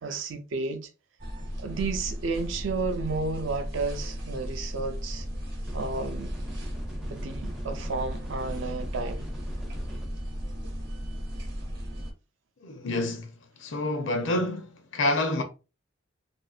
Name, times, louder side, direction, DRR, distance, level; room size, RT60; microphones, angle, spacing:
voice 1, 0.0-0.9 1.6-5.3 5.7-6.3 7.1-9.3, right 3 dB, 65° right, 0.5 m, -32 dB
sound 1, 1.2-12.1, equal, 50° right, 0.9 m, -35 dB
sound 2, 5.7-10.1, equal, ahead, 0.4 m, -42 dB
voice 2, 12.6-15.4, left 2 dB, 65° left, 0.5 m, -28 dB
2.8 x 2.5 x 2.4 m
head